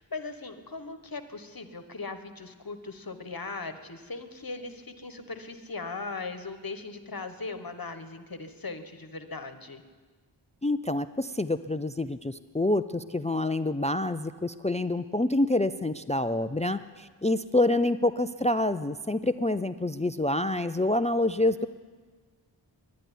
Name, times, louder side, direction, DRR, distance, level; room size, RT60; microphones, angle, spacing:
voice 1, 0.0-9.8, left 3 dB, 50° left, 8 dB, 1.2 m, -39 dB
voice 2, 10.6-21.7, left 1 dB, 15° left, 13 dB, 0.3 m, -27 dB
11.5 x 10.5 x 9.9 m, 1.4 s
wide cardioid pair, 45°, 47 cm